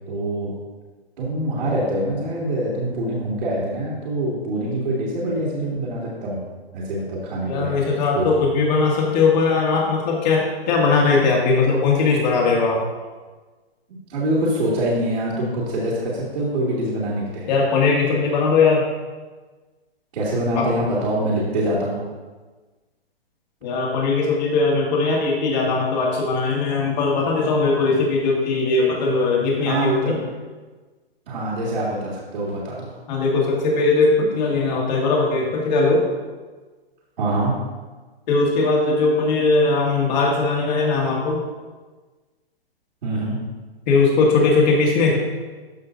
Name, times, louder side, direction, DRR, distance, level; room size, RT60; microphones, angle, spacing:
voice 1, 0.1-0.5 1.2-6.4 6.7-7.8 8.1-8.3 14.1-17.5 20.1-22.0 29.6-30.2 31.3-33.0 37.2-37.5 43.0-43.4, right 1 dB, 60° right, -8 dB, 2.4 m, -24 dB
voice 2, 7.5-12.8 17.5-18.9 20.6-20.7 23.6-30.2 33.1-36.1 38.3-41.4 43.9-45.2, left 3 dB, 45° left, -2 dB, 2.1 m, -19 dB
13.5 x 5.6 x 2.6 m, 1.3 s
hypercardioid pair, 130°, 31 cm